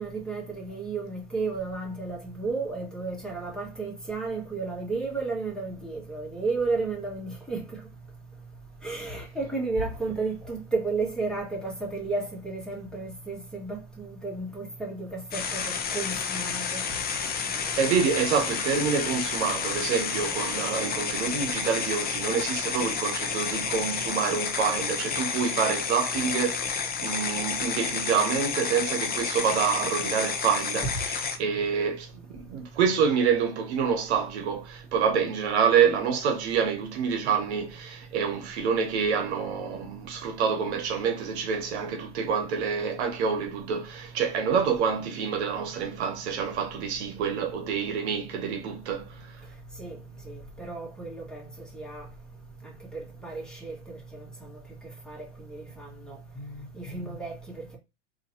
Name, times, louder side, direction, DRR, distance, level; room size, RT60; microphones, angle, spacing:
voice 1, 0.0-7.8 8.8-16.8 49.8-50.0 50.3-51.5 51.7-52.1 52.6-54.3 55.1-55.2 55.5-57.8, right 3 dB, ahead, 1.9 m, -33 dB
sound 1, 15.3-31.4, left 6 dB, 25° left, 0.8 m, -30 dB
voice 2, 17.6-49.3, right 6 dB, 70° right, 1.1 m, -27 dB
3.8 x 2.9 x 2.9 m
hypercardioid pair, 100°, 35 cm